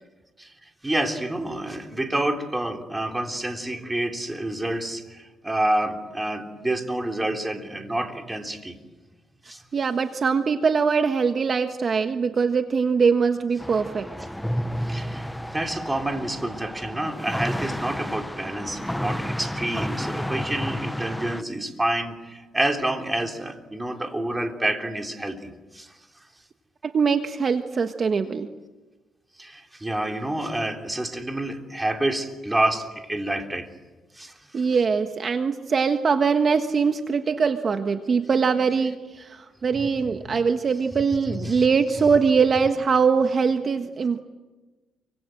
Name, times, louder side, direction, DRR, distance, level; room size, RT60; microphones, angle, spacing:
voice 1, 0.8-8.8 9.5-9.6 14.9-25.5 25.7-25.9 29.4-33.7 34.2-34.3 40.2-40.4 41.3-41.6, right 1 dB, 15° right, 4 dB, 3.6 m, -28 dB
voice 2, 9.7-14.1 26.8-28.5 34.5-44.2, right 5 dB, 45° right, 7 dB, 1.4 m, -22 dB
sound 1, 13.6-21.4, equal, 5° left, 1.0 m, -31 dB
29.0 x 25.0 x 7.8 m, 1.2 s
cardioid pair, 90°, 0 cm